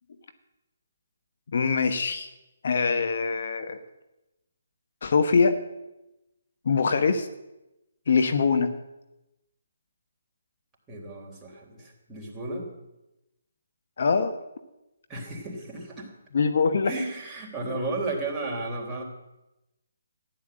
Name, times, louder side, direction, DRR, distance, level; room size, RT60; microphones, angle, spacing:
voice 1, 1.5-2.3 2.6-3.8 5.0-5.6 6.6-7.3 8.1-8.7 14.0-14.3 16.3-16.9, left 5 dB, 60° left, 8 dB, 1.2 m, -23 dB
voice 2, 10.9-12.7 15.1-16.1 16.9-19.0, right 2 dB, 10° right, -3 dB, 3.7 m, -33 dB
14.5 x 11.0 x 7.8 m, 0.96 s
figure-of-eight pair, 145°, 0 cm